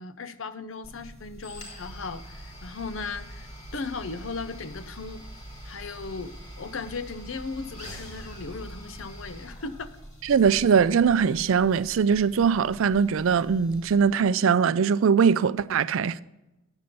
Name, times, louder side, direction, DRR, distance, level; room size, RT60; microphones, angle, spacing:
voice 1, 0.0-5.3 5.6-9.9, left 4 dB, 65° left, 0.6 m, -37 dB
sound 1, 0.8-14.3, equal, 35° left, 2.1 m, -44 dB
voice 2, 10.3-16.2, right 6 dB, 70° right, 0.4 m, -21 dB
9.0 x 6.8 x 5.2 m
head